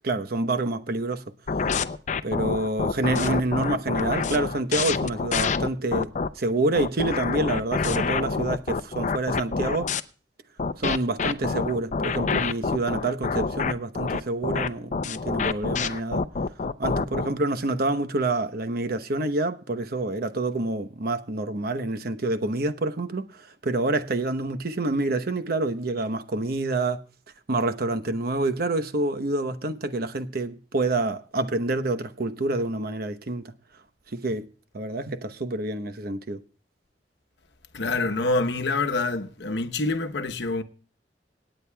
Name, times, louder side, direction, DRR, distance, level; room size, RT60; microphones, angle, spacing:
voice 1, 0.0-1.2 2.2-9.9 10.8-16.2 16.8-27.0 27.5-33.5 34.1-34.5 34.7-36.4, right 2 dB, 60° right, 0.9 m, -27 dB
sound 1, 1.5-6.3 6.8-10.0 10.6-17.3, left 4 dB, 45° left, 0.5 m, -27 dB
voice 2, 37.7-40.6, left 3 dB, 75° left, 1.0 m, -26 dB
26.0 x 9.2 x 2.3 m
head